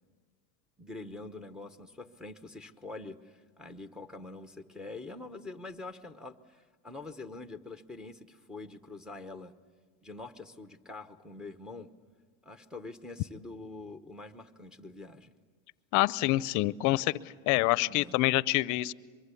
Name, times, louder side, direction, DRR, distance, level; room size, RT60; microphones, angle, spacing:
voice 1, 0.8-9.5 10.0-11.9 12.4-15.3 17.8-18.2, left 3 dB, ahead, 8 dB, 0.9 m, -45 dB
voice 2, 15.9-17.1 17.5-18.9, left 19 dB, 50° left, 19 dB, 0.7 m, -26 dB
23.5 x 23.0 x 8.4 m, 1.5 s
supercardioid pair, 135°, 37 cm